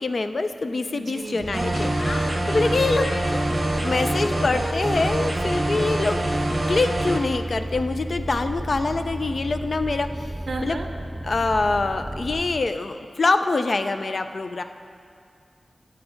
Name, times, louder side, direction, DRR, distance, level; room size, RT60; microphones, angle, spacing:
voice 1, 0.0-3.5 3.7-10.1 10.6-10.8 11.2-14.6, left 3 dB, 50° left, 9 dB, 0.3 m, -25 dB
voice 2, 0.9-1.7 10.5-10.9, right 2 dB, 60° right, 4 dB, 0.5 m, -32 dB
sound 1, 1.1-6.0, left 2 dB, 85° left, 0.6 m, -40 dB
sound 2, 1.4-12.5, right 1 dB, 10° right, 1.2 m, -31 dB
sound 3, 1.5-7.2, right 1 dB, 35° right, 0.8 m, -26 dB
9.5 x 8.0 x 2.5 m, 2.2 s
wide cardioid pair, 120°, 0 cm